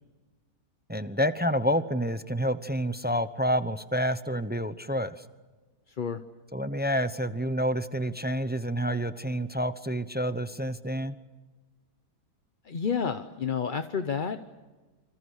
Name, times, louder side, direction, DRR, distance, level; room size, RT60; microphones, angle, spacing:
voice 1, 0.9-5.2 6.5-11.2, equal, 10° right, 11 dB, 0.4 m, -28 dB
voice 2, 5.9-6.2 12.6-14.5, left 6 dB, 40° left, 8 dB, 0.8 m, -30 dB
28.0 x 26.0 x 6.5 m, 1.2 s
omnidirectional pair, 1.8 m